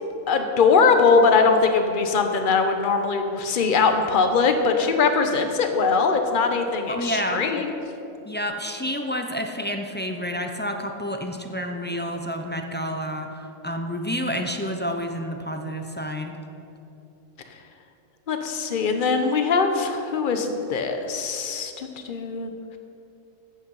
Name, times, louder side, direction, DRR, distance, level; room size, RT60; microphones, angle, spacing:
voice 1, 0.3-7.7 18.3-22.5, left 4 dB, 40° left, 6 dB, 1.0 m, -21 dB
voice 2, 6.9-7.4 8.2-16.3, equal, 15° left, 4 dB, 0.4 m, -29 dB
14.5 x 8.3 x 5.6 m, 2.8 s
omnidirectional pair, 1.5 m